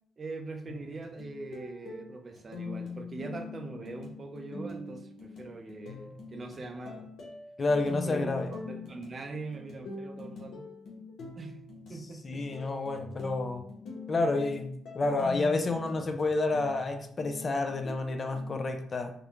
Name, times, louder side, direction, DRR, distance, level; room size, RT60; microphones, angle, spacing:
voice 1, 0.2-7.1 8.0-10.7 11.4-11.6 11.9-12.4, right 3 dB, 35° right, 5 dB, 0.4 m, -42 dB
sound 1, 0.7-18.6, left 4 dB, 75° left, 0.7 m, -43 dB
voice 2, 7.6-8.5 12.2-13.6 14.1-19.1, left 3 dB, 35° left, 5 dB, 0.3 m, -29 dB
2.4 x 2.1 x 2.9 m, 0.64 s
cardioid pair, 90°, 0 cm